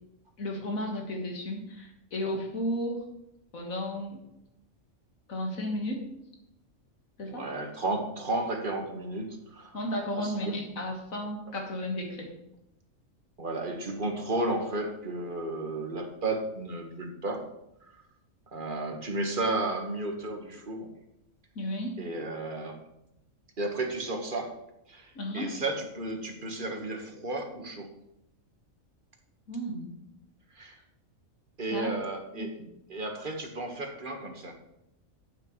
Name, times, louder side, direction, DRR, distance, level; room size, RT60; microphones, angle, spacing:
voice 1, 0.4-3.0 3.5-4.2 5.3-6.1 7.2-7.5 9.7-12.3 21.6-22.0 25.2-25.6 29.5-29.9 31.7-31.9 32.4-32.7, equal, 90° left, 1 dB, 2.0 m, -33 dB
voice 2, 7.2-9.8 10.1-10.5 13.4-17.4 18.5-20.9 22.0-22.8 23.6-24.5 24.9-27.9 30.5-30.8 31.6-32.5 32.9-34.5, right 2 dB, 40° right, 3 dB, 1.6 m, -33 dB
11.5 x 8.8 x 3.1 m, 0.85 s
omnidirectional pair, 1.4 m